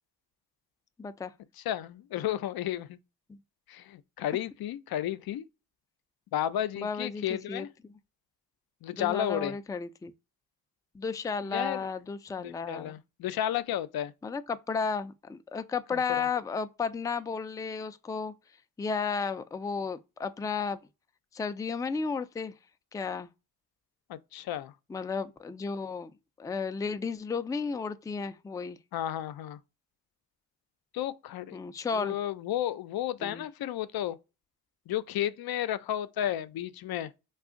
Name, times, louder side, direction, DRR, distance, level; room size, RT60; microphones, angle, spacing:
voice 1, 1.0-1.3 3.3-3.4 6.8-7.7 9.0-10.1 10.9-12.9 14.2-18.3 18.8-20.8 21.3-22.5 22.9-23.3 24.9-26.1 26.4-28.8 31.5-32.2 33.2-33.4, left 5 dB, 10° left, 0.4 m, -33 dB
voice 2, 1.7-3.0 3.7-5.4 6.3-7.7 8.8-9.5 11.5-11.9 12.4-14.1 15.9-16.3 24.1-24.7 28.9-29.6 30.9-31.6 31.9-34.2 34.9-37.1, left 12 dB, 65° left, 0.6 m, -32 dB
2.4 x 2.4 x 3.7 m
supercardioid pair, 55°, 39 cm